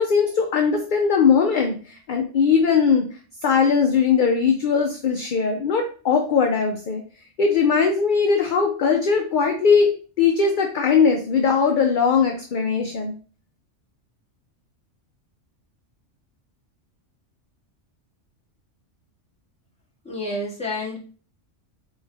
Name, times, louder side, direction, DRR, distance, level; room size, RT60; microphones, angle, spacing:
voice 1, 0.0-3.1 3.4-7.0 7.4-9.9 10.2-13.1, left 6 dB, 55° left, 3 dB, 0.6 m, -20 dB
voice 2, 20.0-21.0, left 1 dB, 5° left, -5 dB, 1.3 m, -29 dB
3.6 x 3.3 x 3.3 m, 0.39 s
omnidirectional pair, 1.2 m